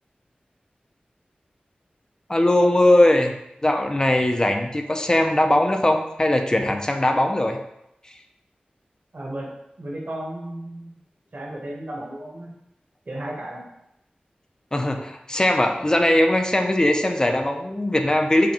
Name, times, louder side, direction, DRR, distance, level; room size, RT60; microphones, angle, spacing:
voice 1, 2.3-3.3 3.6-7.6 14.7-18.5, left 1 dB, 25° left, 4 dB, 0.4 m, -20 dB
voice 2, 9.1-9.5 9.8-11.0 11.3-12.5 13.1-13.7, right 1 dB, 60° right, -3 dB, 1.1 m, -34 dB
4.8 x 2.2 x 2.9 m, 0.83 s
wide cardioid pair, 65°, 3 cm